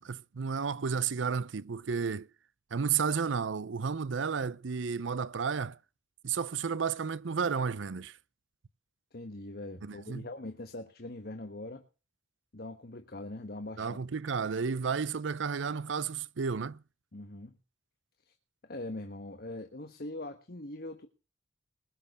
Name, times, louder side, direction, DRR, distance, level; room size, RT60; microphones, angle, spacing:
voice 1, 0.0-2.3 2.7-5.8 6.2-8.2 9.8-10.3 13.8-16.8, right 6 dB, 80° right, 0.6 m, -32 dB
voice 2, 9.1-11.8 12.5-14.0 17.1-17.6 18.3-18.4 18.6-21.1, left 2 dB, 55° left, 1.3 m, -42 dB
20.5 x 6.9 x 6.5 m
head